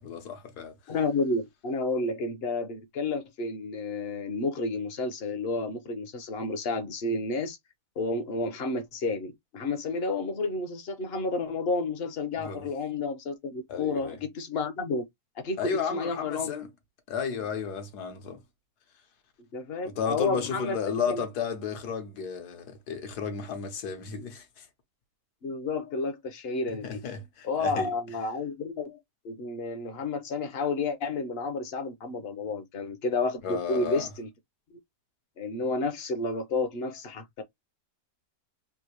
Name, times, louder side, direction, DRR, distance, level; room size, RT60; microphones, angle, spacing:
voice 1, 0.0-0.7 12.4-12.6 13.7-14.2 15.6-16.7 17.1-18.4 19.8-24.7 26.7-27.9 33.4-34.1, left 6 dB, 75° left, 1.4 m, -33 dB
voice 2, 0.9-7.6 8.0-15.0 15.4-16.5 19.5-20.8 21.1-21.2 25.4-27.0 27.4-29.0 29.2-34.3 34.7-34.8 35.4-37.4, left 3 dB, 50° left, 0.8 m, -31 dB
3.8 x 2.6 x 2.9 m
omnidirectional pair, 1.7 m